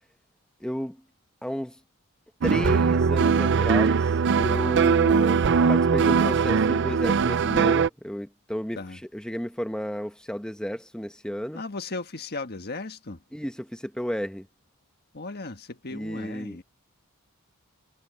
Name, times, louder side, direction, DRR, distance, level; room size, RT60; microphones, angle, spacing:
voice 1, 0.6-1.0 1.4-1.8 2.4-11.6 13.3-14.5 15.9-16.6, equal, 5° left, 1.2 m, -33 dB
sound 1, 2.4-7.9, right 5 dB, 55° right, 0.5 m, -21 dB
voice 2, 11.5-13.2 15.1-16.6, left 3 dB, 45° left, 1.5 m, -36 dB
head